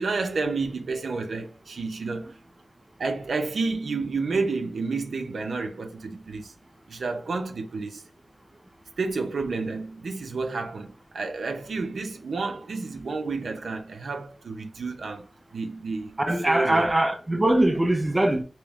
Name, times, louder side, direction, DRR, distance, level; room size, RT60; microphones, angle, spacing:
voice 1, 0.0-2.4 3.0-6.5 6.9-8.0 9.0-16.2 16.5-16.9, right 4 dB, 85° right, 0.7 m, -30 dB
voice 2, 16.2-18.4, right 1 dB, 20° right, 0.5 m, -22 dB
3.5 x 2.9 x 3.1 m
wide cardioid pair, 115°, 0 cm